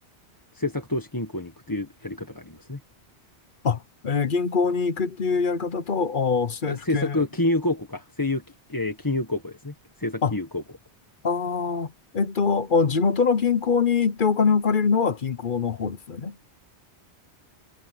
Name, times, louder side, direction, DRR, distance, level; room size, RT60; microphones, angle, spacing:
voice 1, 0.5-2.8 6.7-8.4 8.7-9.7 10.0-10.6, left 2 dB, 20° left, 1.5 m, -28 dB
voice 2, 3.6-7.2 10.2-10.3 11.2-11.9 12.1-16.4, left 5 dB, 50° left, 1.0 m, -23 dB
omnidirectional pair, 1.1 m